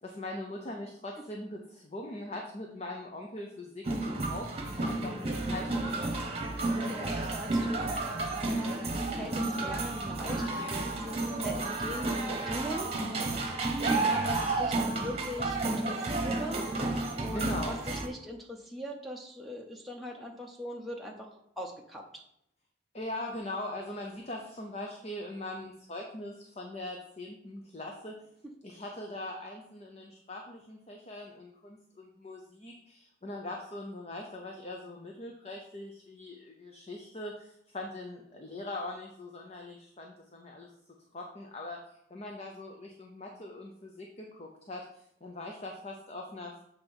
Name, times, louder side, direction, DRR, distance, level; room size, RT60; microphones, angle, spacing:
voice 1, 0.0-6.4 17.3-17.7 22.9-28.1 28.6-40.7 41.1-41.8 42.1-46.6, left 1 dB, 35° left, 1 dB, 0.7 m, -41 dB
sound 1, 3.8-18.1, right 2 dB, 35° right, 1.0 m, -31 dB
voice 2, 6.5-21.3 21.6-22.2, equal, ahead, 0 dB, 0.7 m, -41 dB
7.4 x 3.5 x 5.3 m, 0.77 s
head